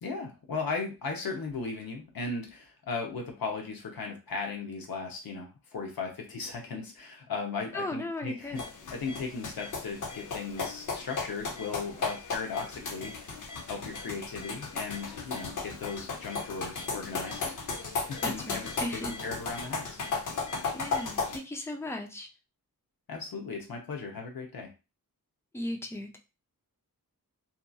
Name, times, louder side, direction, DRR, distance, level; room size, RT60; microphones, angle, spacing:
voice 1, 0.0-8.6 8.9-13.3 13.7-17.4 18.1-20.0 23.1-24.7, left 4 dB, 85° left, 2 dB, 0.8 m, -37 dB
voice 2, 7.7-8.6 18.2-19.1 20.7-22.3 25.5-26.2, left 1 dB, 10° left, 4 dB, 0.4 m, -36 dB
sound 1, 8.6-21.4, left 4 dB, 60° left, 0.7 m, -35 dB
2.8 x 2.5 x 2.3 m, 0.29 s
wide cardioid pair, 115°, 35 cm